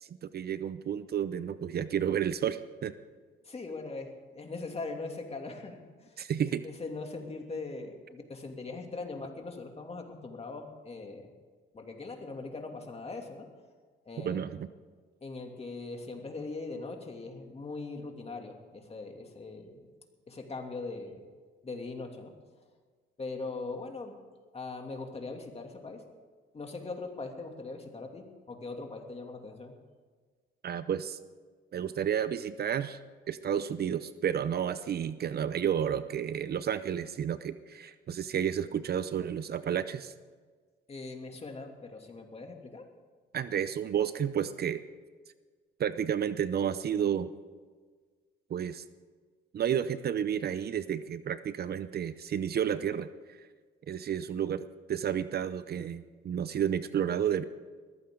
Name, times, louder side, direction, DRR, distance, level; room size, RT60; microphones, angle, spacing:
voice 1, 0.0-2.9 6.2-6.6 14.2-14.7 30.6-31.2 31.7-33.0 33.3-40.1 43.3-44.8 45.8-47.3 48.5-48.8 49.5-53.4 53.9-57.4, right 9 dB, 55° right, 13 dB, 0.7 m, -31 dB
voice 2, 3.4-6.2 6.6-11.3 11.7-13.5 14.1-14.4 15.2-19.9 20.3-21.2 21.6-22.3 23.2-24.2 24.5-26.0 26.5-29.7 40.9-42.9, left 3 dB, 30° left, 2 dB, 2.7 m, -41 dB
21.0 x 15.0 x 3.9 m, 1.5 s
cardioid pair, 90°, 20 cm